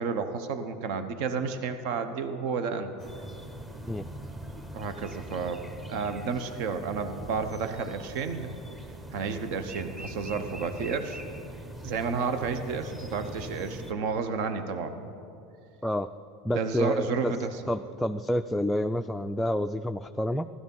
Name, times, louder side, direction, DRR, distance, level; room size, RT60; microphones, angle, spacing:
voice 1, 0.0-2.9 4.7-8.5 9.1-11.2 11.8-15.0 16.5-17.5, right 5 dB, 65° right, 9 dB, 1.0 m, -31 dB
sound 1, 3.0-13.9, right 1 dB, 15° right, 1.2 m, -42 dB
voice 2, 16.4-17.3 17.7-20.5, left 1 dB, 5° left, 6 dB, 0.4 m, -29 dB
15.5 x 13.0 x 5.5 m, 2.6 s
hypercardioid pair, 95°, 0 cm